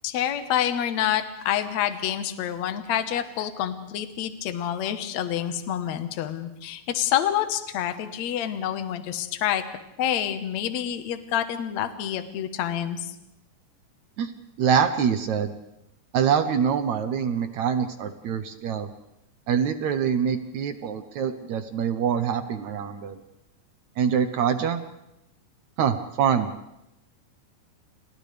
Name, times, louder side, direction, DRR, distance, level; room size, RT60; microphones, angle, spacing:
voice 1, 0.0-9.6 10.0-13.1, left 10 dB, 60° left, 8 dB, 2.3 m, -27 dB
voice 2, 14.6-15.6 16.1-18.9 19.5-23.2 24.0-24.8 25.8-26.5, right 7 dB, 65° right, 8 dB, 2.0 m, -25 dB
30.0 x 30.0 x 3.4 m, 0.86 s
omnidirectional pair, 4.1 m